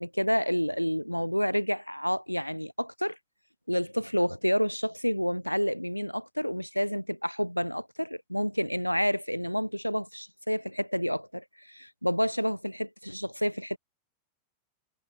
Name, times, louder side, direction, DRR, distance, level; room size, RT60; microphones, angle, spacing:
voice 1, 0.0-3.2 3.7-13.8, equal, 90° left, 3.1 m, -29 dB
figure-of-eight pair, 90°, 0 cm